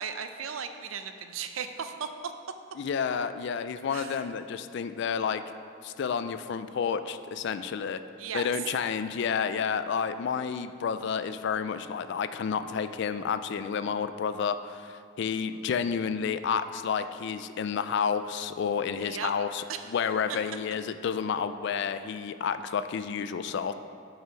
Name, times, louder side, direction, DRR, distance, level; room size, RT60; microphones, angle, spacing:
voice 1, 0.0-2.3 3.9-4.3 8.2-8.5 19.0-19.3 19.7-19.9, right 7 dB, 80° right, 8 dB, 0.5 m, -36 dB
voice 2, 2.8-5.4 5.8-8.0 8.3-23.7, left 6 dB, 55° left, 11 dB, 0.3 m, -30 dB
7.6 x 5.7 x 4.5 m, 2.4 s
head